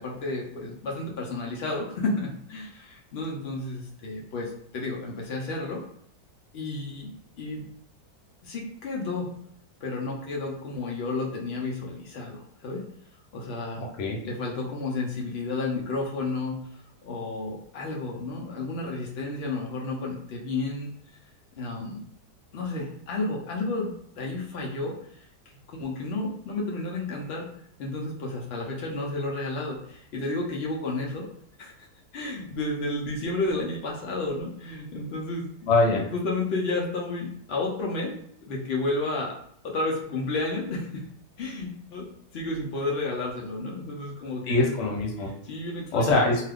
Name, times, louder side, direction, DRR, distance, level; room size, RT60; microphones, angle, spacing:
voice 1, 0.0-5.8 6.5-7.7 8.4-9.3 9.8-12.8 13.3-13.9 14.2-20.9 21.6-22.0 22.5-25.2 25.7-27.5 27.8-31.3 31.6-31.7 32.1-35.5 35.9-38.1 38.4-39.3 39.6-41.0 41.4-42.1 42.3-44.8 45.2-46.2, left 2 dB, 80° left, -2 dB, 0.5 m, -31 dB
voice 2, 13.8-14.2 35.7-36.0 44.5-45.3 45.9-46.4, left 2 dB, 60° left, -1 dB, 1.0 m, -23 dB
2.7 x 2.3 x 3.4 m, 0.68 s
omnidirectional pair, 1.8 m